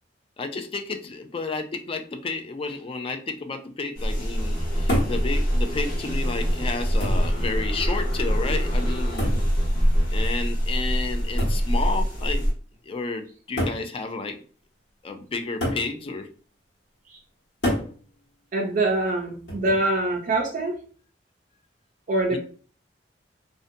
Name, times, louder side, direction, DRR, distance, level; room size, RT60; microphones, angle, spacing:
voice 1, 0.4-9.3 10.1-12.5 12.8-14.4 15.0-16.3 22.3-22.4, left 3 dB, 30° left, 6 dB, 0.3 m, -31 dB
sound 1, 3.9-12.5, equal, 50° left, 0.8 m, -24 dB
sound 2, 4.4-10.3, right 1 dB, ahead, 0.8 m, -38 dB
sound 3, 4.9-5.2 6.3-6.4 7.0-7.4 9.2-9.5 11.4-11.7 12.7-12.8 13.6-13.9 15.6-15.9 17.6-17.9 19.5-19.9, equal, 70° left, 1.2 m, -27 dB
voice 2, 18.5-20.8 22.1-22.4, right 2 dB, 45° right, -1 dB, 0.4 m, -24 dB
2.5 x 2.1 x 2.5 m, 0.42 s
head